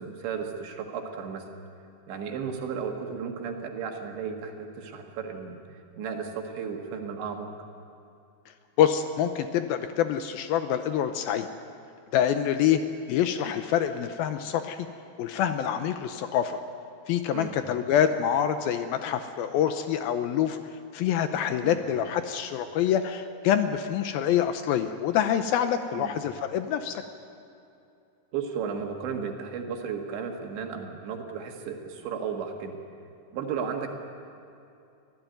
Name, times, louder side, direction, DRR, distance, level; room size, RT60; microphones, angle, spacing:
voice 1, 0.0-1.5 2.1-7.5 17.3-17.5 21.6-21.8 25.9-26.1 28.3-32.8 33.3-33.9, right 6 dB, 75° right, 2 dB, 4.0 m, -34 dB
voice 2, 8.8-11.5 12.1-12.8 13.1-14.8 15.2-16.6 17.1-20.6 20.9-27.0, left 9 dB, 80° left, 8 dB, 2.2 m, -26 dB
25.5 x 16.5 x 9.3 m, 2.6 s
omnidirectional pair, 5.2 m